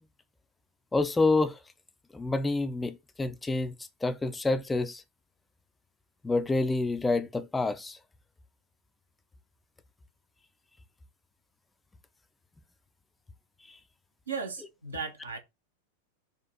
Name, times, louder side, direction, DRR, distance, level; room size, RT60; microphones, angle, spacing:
voice 1, 0.9-1.6 2.1-3.7 4.0-5.0 6.2-8.0 13.7-13.8, left 3 dB, 10° left, 0.4 m, -28 dB
voice 2, 14.3-15.4, right 5 dB, 75° right, 1.0 m, -36 dB
4.1 x 2.4 x 4.3 m
figure-of-eight pair, 90°, 0 cm